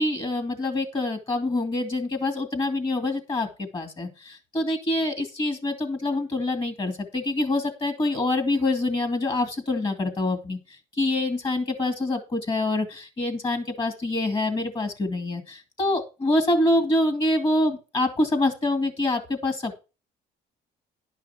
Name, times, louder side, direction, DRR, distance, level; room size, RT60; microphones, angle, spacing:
voice 1, 0.0-19.8, left 2 dB, 30° left, 8 dB, 2.5 m, -26 dB
11.0 x 5.7 x 5.9 m, 0.30 s
cardioid pair, 110°, 17 cm